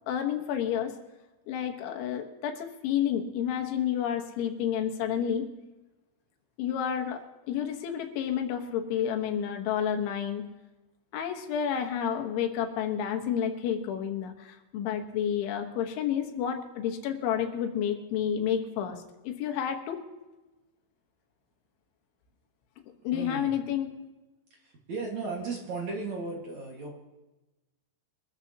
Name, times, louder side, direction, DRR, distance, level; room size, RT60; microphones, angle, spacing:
voice 1, 0.1-0.9 1.5-5.5 6.6-10.5 11.1-20.0 23.1-23.9, left 9 dB, 85° left, 4 dB, 3.8 m, -30 dB
voice 2, 23.1-23.5 24.5-27.0, right 4 dB, 50° right, -1 dB, 2.5 m, -36 dB
24.0 x 14.0 x 2.9 m, 1.1 s
omnidirectional pair, 5.3 m